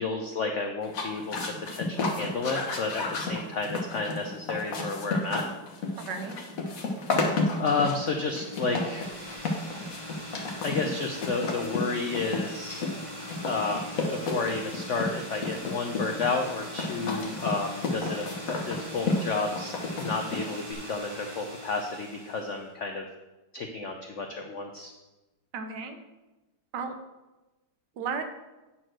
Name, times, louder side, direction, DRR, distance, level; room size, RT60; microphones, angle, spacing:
voice 1, 0.0-5.4 7.6-9.1 10.6-12.8 13.5-14.0 14.3-23.0 23.5-24.9, left 4 dB, 75° left, 3 dB, 0.6 m, -31 dB
sound 1, 0.8-20.7, left 3 dB, 50° left, 1.4 m, -32 dB
voice 2, 5.9-6.4 17.0-17.3 25.5-26.0 26.7-26.9 28.0-28.3, right 5 dB, 65° right, 7 dB, 1.5 m, -34 dB
sound 2, 8.2-22.6, equal, 20° right, 2.0 m, -42 dB
9.0 x 4.4 x 6.2 m, 1.1 s
omnidirectional pair, 2.1 m